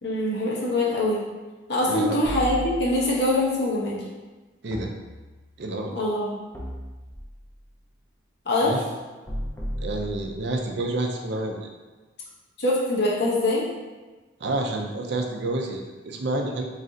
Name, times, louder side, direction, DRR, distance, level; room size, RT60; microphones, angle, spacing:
voice 1, 0.0-1.2 1.7-4.0 5.9-6.4 8.5-8.7 12.6-13.7, left 1 dB, 60° left, -5 dB, 0.9 m, -23 dB
voice 2, 1.9-2.2 4.6-4.9 5.6-5.9 8.6-8.8 9.8-11.7 14.4-16.7, right 2 dB, 60° right, 2 dB, 0.5 m, -29 dB
sound 1, 2.2-3.3 4.7-5.7 6.5-7.6 9.3-10.7, equal, 15° left, 0.5 m, -35 dB
3.2 x 2.7 x 3.7 m, 1.2 s
head